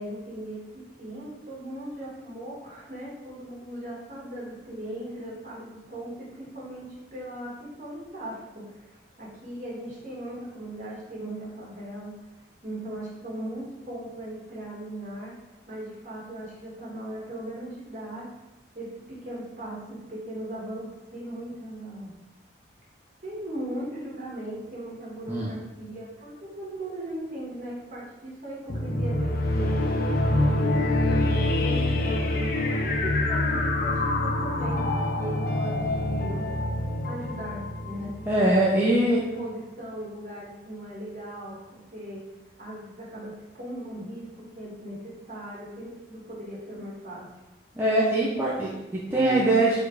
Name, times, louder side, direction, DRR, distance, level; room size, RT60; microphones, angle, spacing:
voice 1, 0.0-12.1 12.6-15.3 15.7-18.3 18.7-22.1 23.2-30.8 31.2-34.8 35.2-36.5 37.0-38.1 38.8-42.2 42.6-47.3, right 1 dB, 40° right, -6 dB, 2.1 m, -38 dB
sound 1, 28.7-38.9, left 1 dB, 50° left, 0.7 m, -26 dB
voice 2, 38.3-39.2 47.8-49.8, right 1 dB, 10° right, -7 dB, 0.8 m, -22 dB
4.7 x 4.3 x 4.9 m, 1.0 s
head